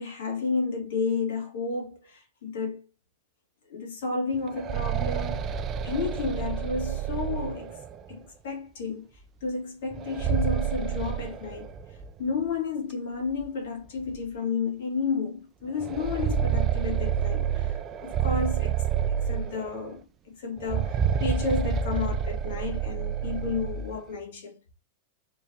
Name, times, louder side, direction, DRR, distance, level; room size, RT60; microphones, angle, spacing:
voice 1, 0.0-2.8 3.7-5.5 5.8-7.8 8.1-18.8 19.1-24.7, left 4 dB, 75° left, 1.7 m, -32 dB
sound 1, 4.3-8.1 9.9-12.1 12.4-12.5 13.4-13.5 14.0-14.1 15.8-19.9 20.6-24.0, right 8 dB, 35° right, 0.3 m, -29 dB
3.6 x 2.7 x 3.1 m
hypercardioid pair, 120°, 0 cm